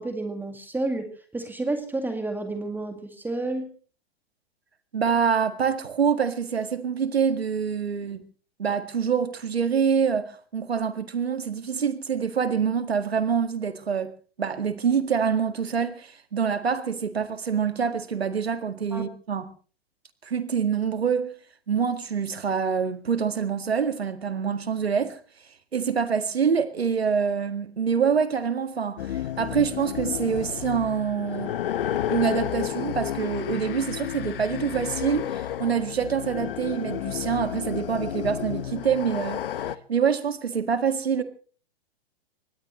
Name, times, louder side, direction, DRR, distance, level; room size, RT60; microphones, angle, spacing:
voice 1, 0.0-3.7 18.9-19.0, right 2 dB, 5° right, 2.0 m, -30 dB
voice 2, 4.9-8.2 8.6-14.1 14.4-19.5 20.2-21.3 21.7-25.2 25.7-31.5 32.1-39.4 39.9-41.2, right 6 dB, 75° right, 2.0 m, -26 dB
sound 1, 29.0-39.8, left 11 dB, 60° left, 1.0 m, -31 dB
23.5 x 19.5 x 3.1 m
figure-of-eight pair, 110°, 31 cm